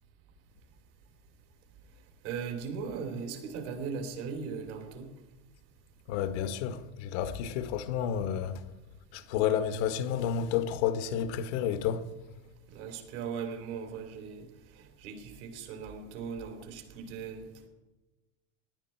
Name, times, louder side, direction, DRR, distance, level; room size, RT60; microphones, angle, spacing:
voice 1, 2.2-5.1 12.7-14.5 14.8-17.5, right 6 dB, 70° right, 3.4 m, -38 dB
voice 2, 6.1-8.6 9.1-12.1, left 9 dB, 70° left, 1.3 m, -30 dB
18.5 x 10.5 x 4.5 m
supercardioid pair, 110°, 36 cm